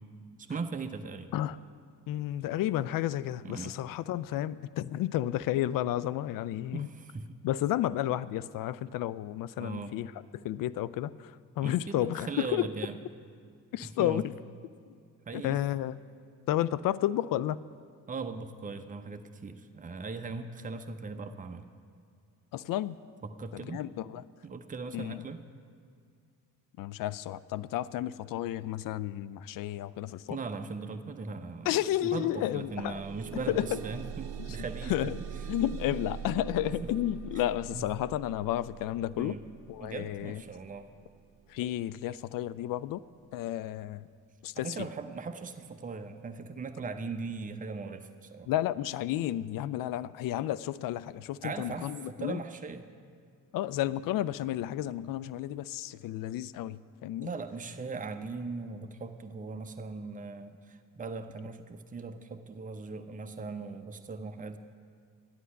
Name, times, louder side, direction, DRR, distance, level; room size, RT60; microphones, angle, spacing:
voice 1, 0.4-1.3 3.4-3.7 6.7-7.4 9.6-10.0 11.6-13.0 13.8-14.2 15.2-15.6 18.1-21.6 23.2-23.8 24.4-25.4 30.3-35.1 36.7-36.9 37.7-37.9 39.2-39.4 39.8-40.9 44.6-48.5 51.4-52.9 57.2-64.6, right 4 dB, 15° right, 7 dB, 0.7 m, -39 dB
voice 2, 2.1-6.9 7.4-12.7 13.7-14.3 15.3-15.9 16.5-17.6 22.5-23.0 23.5-24.2 24.9-25.2 26.8-30.4 31.7-33.0 33.5-33.8 34.9-35.1 35.5-39.4 39.7-40.4 41.5-43.0 43.3-44.1 44.4-44.7 48.5-52.4 53.5-57.3, left 13 dB, 45° left, 18 dB, 0.4 m, -32 dB
sound 1, 31.5-31.7 32.0-43.1 43.8-43.9 44.4-44.5, right 9 dB, 50° right, 0.8 m, -44 dB
12.5 x 11.5 x 5.4 m, 2.3 s
figure-of-eight pair, 40°, 48 cm